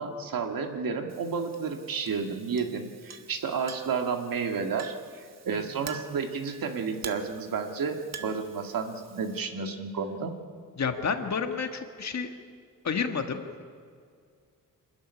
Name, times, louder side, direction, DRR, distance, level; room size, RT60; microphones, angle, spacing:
voice 1, 0.0-10.3, right 5 dB, 80° right, 4 dB, 2.1 m, -31 dB
Chink clink, 1.1-9.4, right 6 dB, 50° right, 1.4 m, -47 dB
voice 2, 10.8-12.3 12.8-13.6, left 5 dB, 50° left, 5 dB, 1.8 m, -30 dB
25.5 x 13.5 x 9.9 m, 2.2 s
wide cardioid pair, 150°, 34 cm